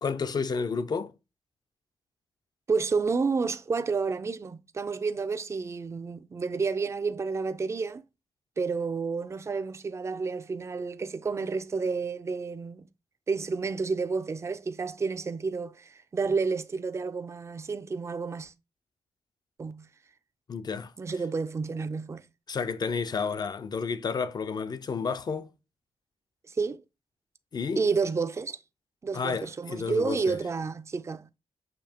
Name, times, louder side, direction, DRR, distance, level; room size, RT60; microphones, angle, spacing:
voice 1, 0.0-1.1 20.5-20.9 22.5-25.5 27.5-27.8 29.1-30.4, left 5 dB, 45° left, 0.5 m, -31 dB
voice 2, 2.7-8.0 8.6-12.9 13.3-18.5 19.6-19.9 21.0-22.3 26.5-26.8 27.8-28.6 29.0-31.4, right 4 dB, 30° right, 0.4 m, -30 dB
6.7 x 2.8 x 2.8 m
cardioid pair, 95°, 10 cm